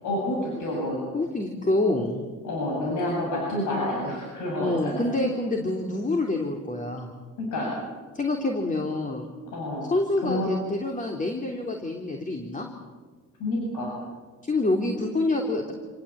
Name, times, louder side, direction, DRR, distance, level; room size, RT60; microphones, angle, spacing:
voice 1, 0.0-1.0 2.4-5.0 7.4-7.8 9.5-9.9 10.2-10.5 13.4-13.9, left 1 dB, 85° left, -2 dB, 7.8 m, -28 dB
voice 2, 1.1-2.2 4.6-7.1 8.1-9.3 9.9-12.7 14.4-15.7, left 2 dB, 25° left, 2 dB, 3.5 m, -27 dB
28.0 x 18.0 x 8.9 m, 1.4 s
cardioid pair, 90°, 30 cm